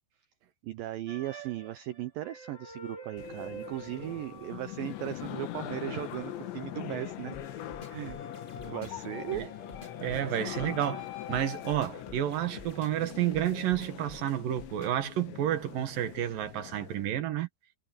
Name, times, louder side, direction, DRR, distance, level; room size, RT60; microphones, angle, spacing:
voice 1, 0.6-7.6 7.9-8.2 8.6-9.4 10.6-10.8, right 14 dB, 85° right, 2.0 m, -37 dB
sound 1, 1.1-5.4 6.1-11.7, left 3 dB, 45° left, 8.7 m, -46 dB
sound 2, 3.2-17.1, left 13 dB, 85° left, 3.8 m, -42 dB
sound 3, 7.3-15.1, left 2 dB, 30° left, 0.9 m, -50 dB
voice 2, 10.0-11.0 11.3-17.5, right 12 dB, 65° right, 2.7 m, -30 dB
omnidirectional pair, 5.1 m